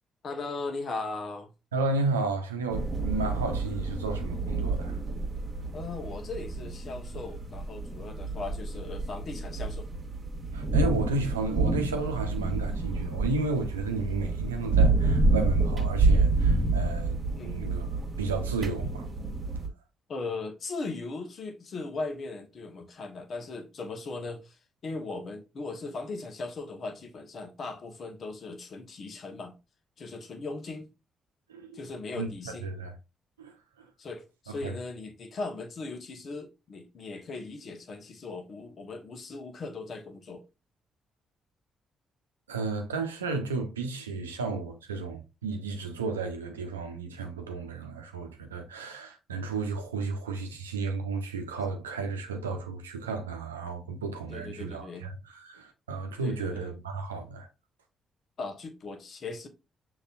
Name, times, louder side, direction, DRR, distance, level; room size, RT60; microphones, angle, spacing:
voice 1, 0.2-1.5 5.7-9.9 17.3-17.8 20.1-29.6 30.0-30.9 31.7-32.6 34.0-40.4 54.3-55.1 56.2-56.7 58.4-59.5, left 3 dB, 50° left, 1.2 m, -38 dB
voice 2, 1.7-5.0 10.5-17.9 18.2-19.1 31.5-31.7 32.1-32.9 33.4-33.9 34.6-34.7 42.5-57.5, right 3 dB, 90° right, 0.6 m, -33 dB
sound 1, 2.7-19.7, right 3 dB, 40° right, 1.4 m, -28 dB
6.6 x 3.1 x 2.5 m
hypercardioid pair, 40°, 0 cm